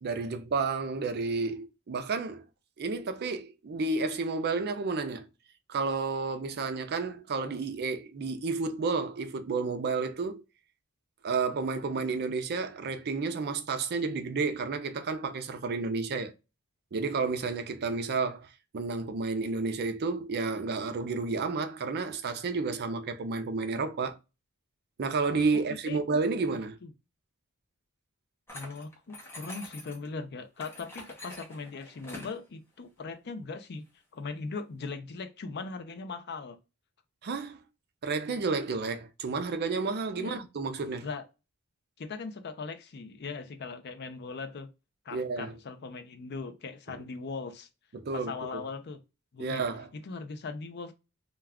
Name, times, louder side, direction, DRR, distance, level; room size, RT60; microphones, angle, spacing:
voice 1, 0.0-2.5 2.8-5.3 5.7-10.4 11.2-16.3 16.9-24.2 25.0-26.8 37.2-37.6 38.0-41.1 45.1-45.5 46.9-47.0 47.9-48.6 49.4-49.9, right 4 dB, 50° right, 0.4 m, -31 dB
voice 2, 25.5-26.0 26.8-26.9 28.5-33.8 34.1-36.6 40.2-40.4 41.0-41.3 42.0-44.7 45.1-47.7 48.1-49.0 49.3-49.6 49.9-50.9, left 4 dB, 50° left, 0.5 m, -39 dB
sound 1, 28.5-30.1 30.6-32.4, left 1 dB, 10° left, 0.7 m, -45 dB
2.3 x 2.3 x 3.4 m
head